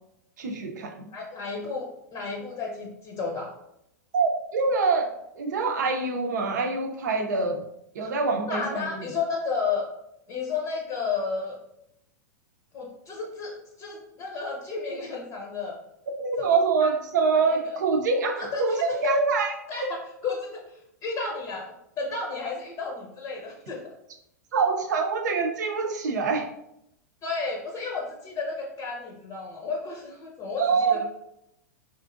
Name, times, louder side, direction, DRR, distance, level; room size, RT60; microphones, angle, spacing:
voice 1, 0.4-1.1 4.1-5.1 5.4-7.6 7.9-9.1 16.2-19.5 24.5-26.5 30.6-31.0, right 4 dB, 70° right, 3 dB, 0.6 m, -25 dB
voice 2, 1.1-3.5 8.0-8.1 8.5-9.9 10.3-11.6 12.7-15.8 16.4-16.5 16.8-16.9 17.5-17.8 18.4-19.2 19.7-23.9 27.2-31.0, left 4 dB, 35° left, 0 dB, 0.7 m, -32 dB
4.3 x 2.5 x 2.5 m, 0.79 s
hypercardioid pair, 100°, 10 cm